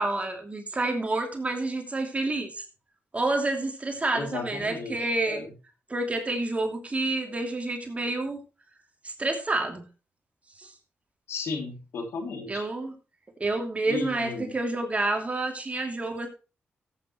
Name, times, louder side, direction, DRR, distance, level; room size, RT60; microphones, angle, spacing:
voice 1, 0.0-2.6 3.1-5.4 5.9-8.4 9.0-9.8 10.6-10.7 12.5-12.9 13.4-16.3, right 2 dB, 30° right, 3 dB, 2.8 m, -29 dB
voice 2, 4.1-5.0 5.3-5.5 11.3-12.7 13.9-14.5, left 4 dB, 85° left, 4 dB, 2.8 m, -34 dB
14.5 x 8.7 x 3.1 m, 0.31 s
cardioid pair, 60°, 4 cm